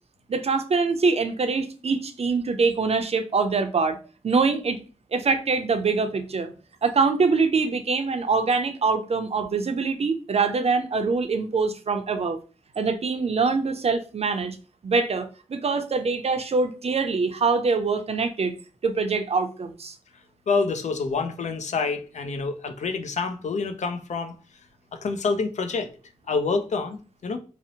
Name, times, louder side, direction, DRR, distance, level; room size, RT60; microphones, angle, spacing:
voice 1, 0.3-4.0 4.2-4.8 5.1-6.5 6.8-12.4 12.8-14.6 14.8-18.5 18.8-20.0, right 4 dB, 55° right, 0.4 m, -24 dB
voice 2, 20.5-24.4 24.9-25.9 26.3-27.4, left 4 dB, 70° left, 0.4 m, -27 dB
2.6 x 2.0 x 2.7 m
cardioid pair, 55°, 13 cm